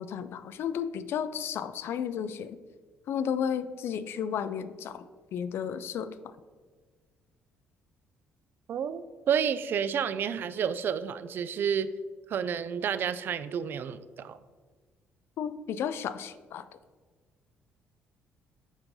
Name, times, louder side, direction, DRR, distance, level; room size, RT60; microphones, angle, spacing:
voice 1, 0.0-2.6 3.1-5.1 5.3-6.3 15.4-16.6, left 8 dB, 65° left, 13 dB, 0.4 m, -33 dB
voice 2, 8.7-11.9 12.3-14.4, right 7 dB, 55° right, 14 dB, 0.3 m, -30 dB
7.1 x 2.6 x 5.3 m, 1.4 s
cardioid pair, 90°, 4 cm